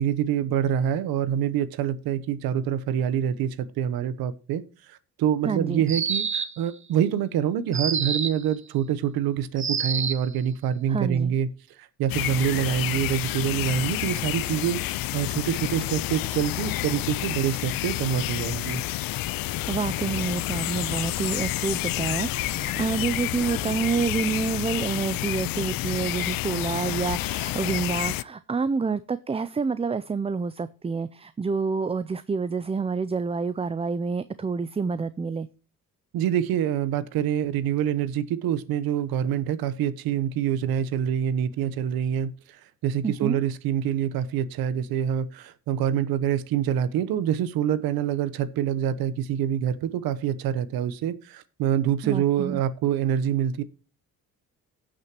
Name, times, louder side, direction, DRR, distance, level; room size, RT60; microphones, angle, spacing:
voice 1, 0.0-11.5 11.8-18.8 36.1-53.6, right 9 dB, 85° right, 1.0 m, -26 dB
voice 2, 5.4-5.8 10.9-11.3 19.7-35.5 43.0-43.4 52.0-52.6, right 5 dB, 15° right, 0.4 m, -28 dB
sound 1, 5.9-6.7 7.7-8.5 9.6-10.3, right 6 dB, 35° right, 1.2 m, -27 dB
sound 2, 12.1-28.2, left 17 dB, 75° left, 0.5 m, -29 dB
sound 3, 19.0-25.2, left 8 dB, 50° left, 1.0 m, -41 dB
17.5 x 6.4 x 3.0 m
cardioid pair, 80°, 35 cm